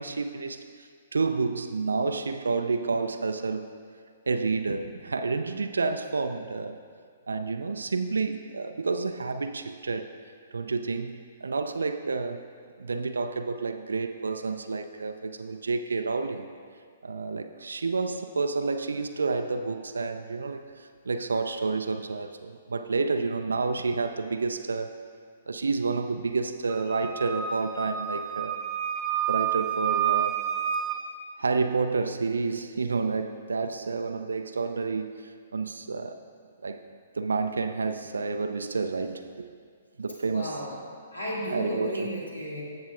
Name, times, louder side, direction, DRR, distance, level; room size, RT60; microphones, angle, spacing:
voice 1, 0.0-3.7 4.3-6.8 7.3-10.1 10.5-12.4 12.8-16.5 17.0-24.9 25.5-28.6 29.3-30.4 31.4-36.2 36.6-36.8 37.1-39.5 40.0-40.6 41.5-42.1, right 4 dB, 70° right, 8 dB, 0.4 m, -29 dB
Wind instrument woodwind instrument, 26.7-31.0, right 10 dB, 20° right, 0.9 m, -29 dB
voice 2, 40.2-40.8 41.1-42.8, equal, 75° left, -5 dB, 2.5 m, -34 dB
15.0 x 7.2 x 2.4 m, 2.1 s
figure-of-eight pair, 120°, 0 cm